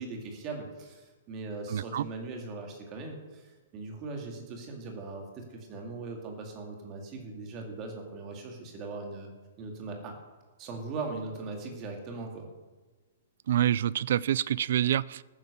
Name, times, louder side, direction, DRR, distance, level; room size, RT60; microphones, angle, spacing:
voice 1, 0.0-9.3 9.6-10.2 10.6-12.5, right 3 dB, 20° right, 2 dB, 2.2 m, -39 dB
voice 2, 1.7-2.1 13.5-15.2, right 11 dB, 55° right, 22 dB, 0.4 m, -27 dB
13.5 x 10.0 x 6.8 m, 1.3 s
hypercardioid pair, 175°, 0 cm